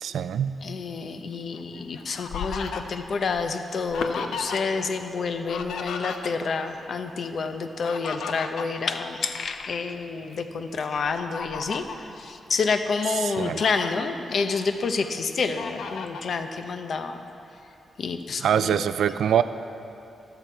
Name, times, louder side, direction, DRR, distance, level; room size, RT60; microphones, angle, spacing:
voice 1, 0.0-0.6 13.2-13.6 18.4-19.4, right 9 dB, 80° right, 12 dB, 0.4 m, -24 dB
voice 2, 0.6-17.2 18.0-18.8, left 4 dB, 50° left, 7 dB, 0.8 m, -29 dB
Fowl, 1.5-4.9 5.1-6.7 7.6-9.7 10.2-10.3 11.0-12.1 12.7-12.8 13.1-13.9 14.4-15.1 15.6-16.3, left 5 dB, 90° left, 0.8 m, -36 dB
13.5 x 13.5 x 4.6 m, 3.0 s
wide cardioid pair, 135°, 0 cm